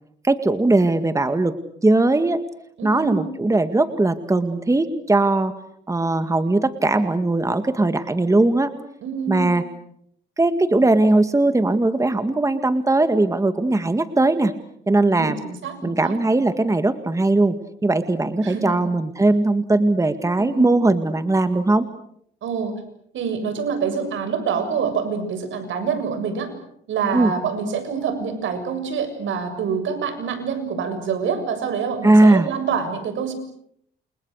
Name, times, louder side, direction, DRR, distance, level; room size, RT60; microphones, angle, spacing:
voice 1, 0.2-1.5 1.8-2.4 2.8-5.5 5.9-8.7 9.3-9.6 10.4-14.5 14.9-15.4 15.8-17.6 17.8-21.9 27.1-27.3 32.0-32.5, right 2 dB, 15° right, 9 dB, 2.0 m, -19 dB
voice 2, 2.8-3.3 9.0-9.6 15.2-16.2 18.4-18.9 20.4-20.7 22.4-22.7 23.1-26.5 26.9-33.3, right 6 dB, 75° right, 9 dB, 7.3 m, -26 dB
29.5 x 28.5 x 6.6 m, 0.71 s
cardioid pair, 90°, 20 cm